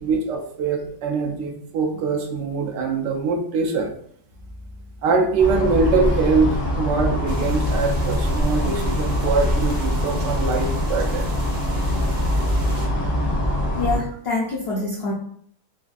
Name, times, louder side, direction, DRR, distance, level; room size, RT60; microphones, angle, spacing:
voice 1, 0.0-3.9 5.0-6.5 6.8-11.3, right 4 dB, 90° right, 1 dB, 1.3 m, -23 dB
sound 1, 5.4-14.0, left 1 dB, 30° left, 0.5 m, -23 dB
sound 2, 7.3-12.9, right 2 dB, 65° right, 1.2 m, -37 dB
voice 2, 13.8-15.1, left 3 dB, 85° left, -3 dB, 0.5 m, -25 dB
4.3 x 2.4 x 2.4 m, 0.63 s
omnidirectional pair, 1.9 m